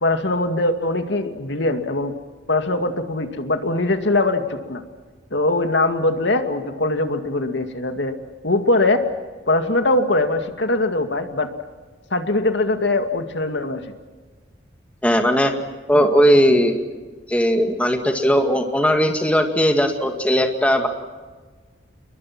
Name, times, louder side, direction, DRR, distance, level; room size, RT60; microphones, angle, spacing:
voice 1, 0.0-2.1 2.5-4.8 5.3-8.2 8.4-9.0 9.5-11.5 12.1-13.8, left 2 dB, 70° left, 7 dB, 2.2 m, -21 dB
voice 2, 15.0-15.5 15.9-16.8 17.3-20.9, equal, 5° left, 4 dB, 2.0 m, -18 dB
28.5 x 22.5 x 6.1 m, 1.3 s
head